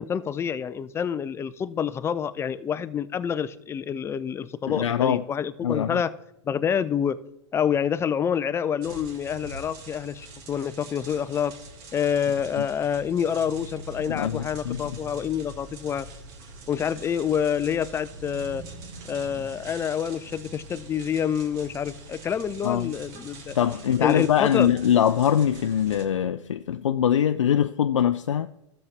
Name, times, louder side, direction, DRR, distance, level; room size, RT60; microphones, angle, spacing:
voice 1, 0.0-6.1 6.4-7.2 7.5-11.5 11.9-16.1 16.7-18.6 19.1-23.5 24.0-24.7, left 8 dB, 15° left, 0.4 m, -27 dB
voice 2, 4.7-5.2 5.6-6.0 12.6-12.7 14.1-14.8 22.6-22.9 23.5-28.5, left 9 dB, 85° left, 0.4 m, -23 dB
sound 1, 8.8-26.1, right 2 dB, 45° right, 1.8 m, -43 dB
13.0 x 7.1 x 3.3 m
hypercardioid pair, 110°, 15 cm